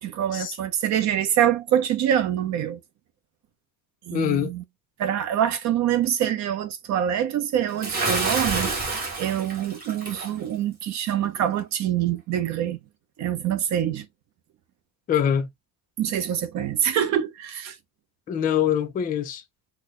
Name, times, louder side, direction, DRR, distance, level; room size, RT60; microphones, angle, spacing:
voice 1, 0.0-2.8 4.1-4.6 5.0-8.7 9.2-12.8 13.2-14.1 16.0-17.8, right 10 dB, 45° right, 0.7 m, -25 dB
voice 2, 4.1-4.5 15.1-15.5 18.3-19.4, left 9 dB, 25° left, 0.4 m, -24 dB
Bathtub (filling or washing) / Splash splatter, 7.8-10.3, right 3 dB, 25° right, 1.0 m, -28 dB
4.0 x 2.0 x 3.1 m
cardioid pair, 175°, 38 cm